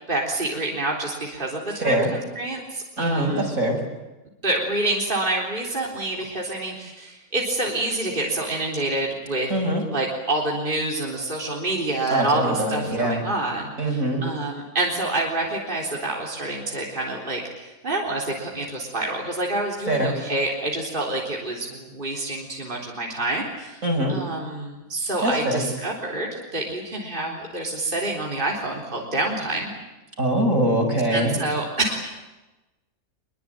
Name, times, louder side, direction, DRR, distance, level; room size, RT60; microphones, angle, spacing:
voice 1, 0.1-3.5 4.4-9.5 9.9-23.8 24.1-29.7 31.1-32.0, right 2 dB, 35° right, -1 dB, 4.0 m, -27 dB
voice 2, 1.8-2.1 3.0-3.8 9.5-9.8 12.1-13.2 13.8-14.2 19.9-20.1 23.8-24.2 25.2-25.6 30.2-31.4, right 1 dB, 65° right, 2 dB, 6.8 m, -23 dB
25.5 x 22.5 x 9.1 m, 1.1 s
omnidirectional pair, 1.5 m